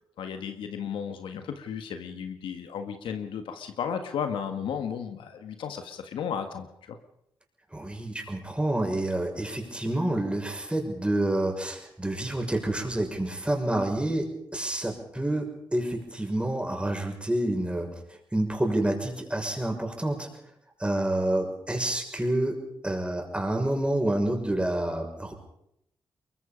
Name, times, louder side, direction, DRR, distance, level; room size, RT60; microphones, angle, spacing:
voice 1, 0.2-7.0, left 7 dB, 90° left, 7 dB, 1.7 m, -34 dB
voice 2, 7.7-17.9 18.3-20.3 20.8-22.6 22.8-25.3, right 1 dB, 15° right, 2 dB, 6.2 m, -28 dB
23.0 x 22.5 x 5.3 m, 0.78 s
cardioid pair, 55°, 8 cm